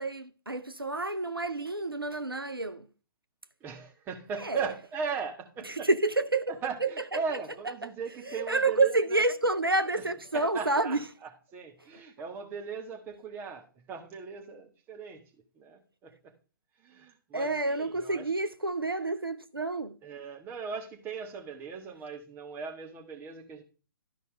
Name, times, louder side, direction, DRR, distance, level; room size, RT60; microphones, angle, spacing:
voice 1, 0.0-2.9 4.4-4.7 5.6-7.4 7.8-7.9 8.2-11.0 17.3-20.0, right 2 dB, 85° right, 0.7 m, -29 dB
voice 2, 3.6-5.9 6.6-9.2 10.3-11.0 11.5-15.2 15.5-16.3 16.8-18.2 20.0-23.6, right 5 dB, 15° right, 1.5 m, -38 dB
12.5 x 5.4 x 3.2 m
figure-of-eight pair, 125°, 12 cm